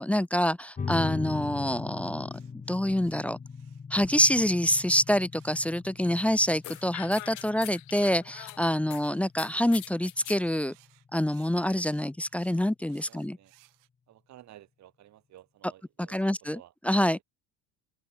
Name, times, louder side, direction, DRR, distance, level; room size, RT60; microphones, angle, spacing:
voice 1, 0.0-2.3 2.7-3.4 3.9-10.7 11.1-13.4 16.0-16.6 16.8-17.2, equal, 5° left, 0.5 m, -26 dB
sound 1, 0.8-11.8, left 5 dB, 20° left, 1.9 m, -40 dB
sound 2, 1.7-7.5 8.4-13.9, right 26 dB, 65° right, 6.7 m, -63 dB
sound 3, 6.6-9.0 9.4-10.4, left 25 dB, 55° left, 0.6 m, -42 dB
voice 2, 13.0-13.5 14.1-16.7 17.1-17.2, right 13 dB, 50° right, 6.1 m, -54 dB
open air
supercardioid pair, 95°, 35 cm